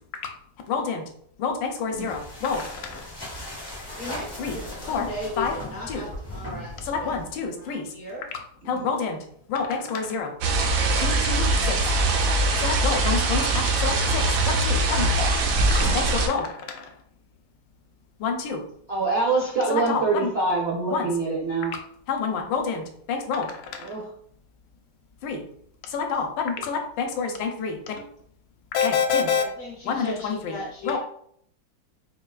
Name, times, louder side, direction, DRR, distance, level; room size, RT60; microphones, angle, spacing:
voice 1, 0.7-1.0 1.4-3.0 4.4-4.6 4.9-5.0 5.4-5.5 5.9-6.0 6.9-7.9 8.7-9.2 9.5-10.3 11.0-11.8 12.6-15.1 15.9-16.9 18.2-18.6 19.7-20.3 20.9-21.1 22.1-23.5 23.7-23.9 25.2-25.4 25.9-27.9 28.7-29.4 29.8-30.6 30.8-31.0, left 5 dB, 80° left, 3 dB, 1.3 m, -27 dB
sound 1, 1.9-7.5, left 1 dB, 30° left, 0.4 m, -38 dB
voice 2, 4.0-7.2 7.5-8.3 29.3-31.0, left 1 dB, 65° left, -2 dB, 0.8 m, -37 dB
sound 2, 10.4-16.3, right 2 dB, 85° right, 1.3 m, -22 dB
voice 3, 18.9-21.7 23.8-24.1, right 3 dB, 65° right, -4 dB, 0.6 m, -25 dB
4.6 x 2.3 x 2.3 m, 0.64 s
omnidirectional pair, 2.0 m